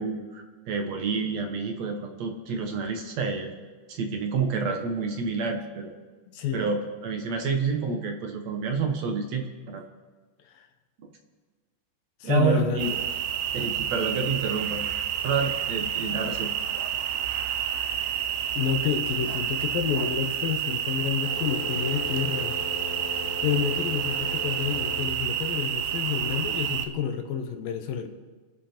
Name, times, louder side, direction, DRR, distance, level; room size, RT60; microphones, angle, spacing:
voice 1, 0.0-3.5 3.9-5.9 6.5-9.8 12.2-12.9 13.5-14.8 15.2-16.5, right 5 dB, 60° right, 4 dB, 2.2 m, -29 dB
voice 2, 6.3-6.7 10.5-10.6 12.2-13.0 18.5-22.5 23.0-23.1 23.4-28.1, left 8 dB, 85° left, 7 dB, 2.9 m, -29 dB
sound 1, 12.8-26.9, right 10 dB, 90° right, 2.6 m, -29 dB
sound 2, 21.2-25.1, left 4 dB, 30° left, 4.9 m, -38 dB
28.5 x 11.0 x 4.5 m, 1.4 s
omnidirectional pair, 3.9 m